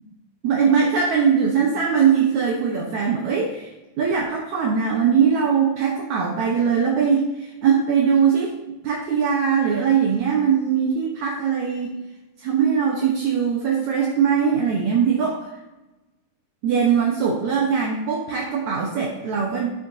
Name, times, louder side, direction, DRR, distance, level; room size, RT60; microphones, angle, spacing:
voice 1, 0.4-3.7 4.0-8.5 8.8-11.9 12.4-15.5 16.6-19.7, right 6 dB, 70° right, -1 dB, 1.8 m, -21 dB
15.0 x 6.5 x 2.8 m, 1.1 s
omnidirectional pair, 4.8 m